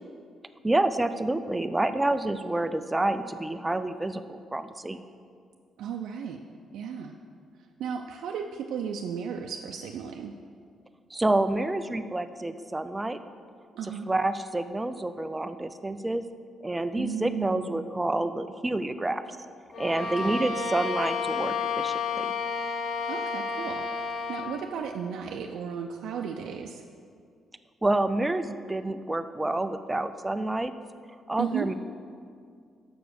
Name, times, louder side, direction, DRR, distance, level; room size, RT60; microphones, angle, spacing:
voice 1, 0.6-5.0 11.1-13.2 13.8-16.2 16.6-19.2 19.8-22.3 27.8-30.7 31.3-31.7, right 2 dB, 10° right, 10 dB, 0.3 m, -28 dB
voice 2, 5.8-6.4 6.7-7.1 7.8-10.3 13.7-14.1 17.0-17.9 20.0-20.5 23.1-23.8 24.3-26.8 31.4-31.7, right 7 dB, 80° right, 2 dB, 0.4 m, -34 dB
Bowed string instrument, 19.7-24.6, left 5 dB, 55° left, 0.6 m, -31 dB
6.9 x 6.0 x 6.4 m, 2.2 s
cardioid pair, 160°, 0 cm